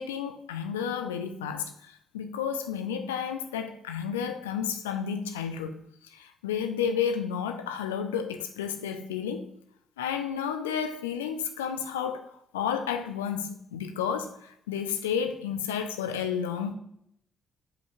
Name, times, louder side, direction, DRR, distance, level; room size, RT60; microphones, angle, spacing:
voice 1, 0.0-5.8 6.1-9.5 10.0-12.3 12.5-16.7, left 7 dB, 80° left, 0.5 m, -31 dB
11.0 x 5.3 x 2.3 m
figure-of-eight pair, 40°, 0 cm